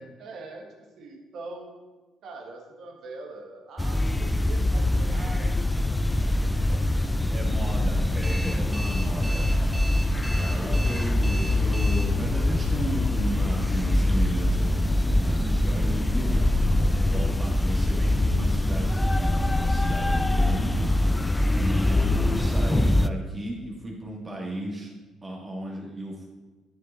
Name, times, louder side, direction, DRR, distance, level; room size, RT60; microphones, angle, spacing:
voice 1, 0.0-1.8 2.2-7.1 10.6-10.9, right 2 dB, 60° right, 1 dB, 1.6 m, -43 dB
sound 1, 3.8-23.1, left 1 dB, 15° left, 0.4 m, -23 dB
voice 2, 7.3-9.5 10.3-16.5 17.1-20.9 21.5-24.9 25.2-26.3, right 1 dB, 30° right, -4 dB, 2.1 m, -34 dB
Alarm, 8.2-12.0, right 1 dB, 15° right, 1.8 m, -37 dB
10.5 x 7.6 x 2.7 m, 1.2 s
figure-of-eight pair, 45°, 0 cm